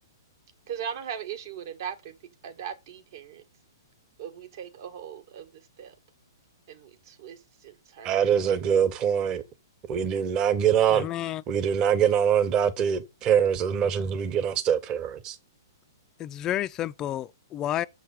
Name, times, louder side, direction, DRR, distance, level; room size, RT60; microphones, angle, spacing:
voice 1, 0.7-2.1 2.4-3.4 4.2-5.5 5.8-5.9 6.7-7.4 7.6-8.6, right 8 dB, 60° right, 1.8 m, -39 dB
voice 2, 8.0-9.4 9.9-11.1 11.5-15.4, right 8 dB, 30° right, 1.0 m, -24 dB
voice 3, 10.9-11.4 16.2-17.9, left 12 dB, 25° left, 0.4 m, -30 dB
6.8 x 6.4 x 5.1 m
hypercardioid pair, 130°, 2 cm